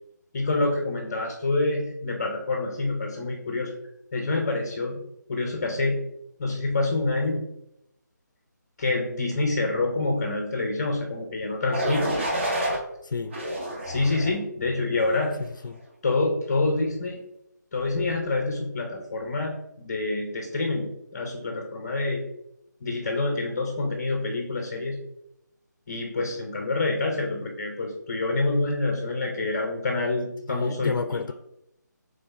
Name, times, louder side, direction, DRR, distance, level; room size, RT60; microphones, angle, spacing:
voice 1, 0.3-3.7 4.1-5.0 5.3-6.0 6.4-7.4 8.8-12.1 13.8-15.3 16.0-17.2 17.7-22.2 22.8-25.0 25.9-31.3, left 2 dB, 25° left, 2 dB, 0.5 m, -27 dB
sound 1, 11.7-12.8 13.3-14.4 14.9-15.3, right 1 dB, 40° right, 0.8 m, -29 dB
voice 2, 13.0-13.4 15.4-15.8 30.5-31.3, left 4 dB, 85° left, 10 dB, 0.4 m, -30 dB
3.6 x 3.2 x 4.1 m, 0.81 s
figure-of-eight pair, 170°, 10 cm